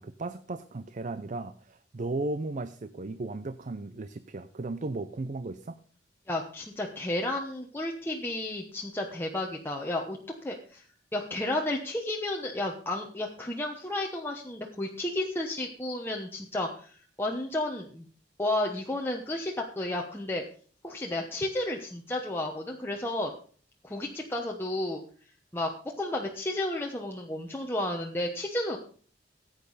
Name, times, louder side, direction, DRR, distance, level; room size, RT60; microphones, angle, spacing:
voice 1, 0.0-5.8, right 2 dB, 45° right, 12 dB, 0.5 m, -35 dB
voice 2, 6.3-10.8 11.1-18.1 18.4-20.4 20.8-23.3 23.8-25.0 25.5-28.8, left 1 dB, 15° left, 0 dB, 1.0 m, -32 dB
15.0 x 8.9 x 4.1 m, 0.43 s
head